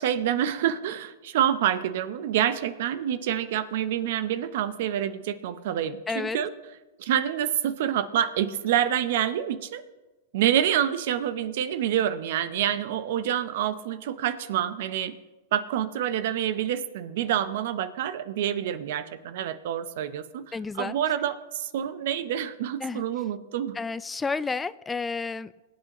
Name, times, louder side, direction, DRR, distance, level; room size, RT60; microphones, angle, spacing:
voice 1, 0.0-6.5 7.0-9.8 10.3-15.2 15.5-20.4 20.8-23.8, right 10 dB, 65° right, 13 dB, 0.8 m, -27 dB
voice 2, 6.1-6.4 20.5-21.0 22.8-23.0 23.7-25.5, left 4 dB, 15° left, 16 dB, 0.3 m, -31 dB
21.0 x 8.5 x 3.0 m, 1.1 s
hypercardioid pair, 120°, 0 cm